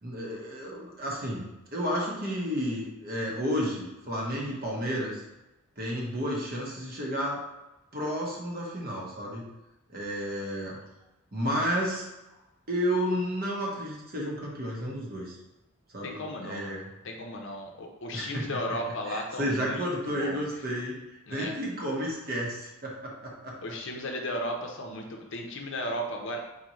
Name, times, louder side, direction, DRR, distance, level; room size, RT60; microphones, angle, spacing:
voice 1, 0.0-5.2 5.8-7.4 7.9-9.5 9.9-10.8 11.3-12.1 12.7-15.4 15.9-16.9 18.1-18.6 19.1-23.6, equal, 45° right, -3 dB, 1.0 m, -32 dB
voice 2, 16.0-16.8 17.0-20.5 21.3-21.5 23.6-26.4, left 1 dB, 60° left, 2 dB, 0.6 m, -35 dB
4.2 x 3.7 x 3.0 m, 0.99 s
head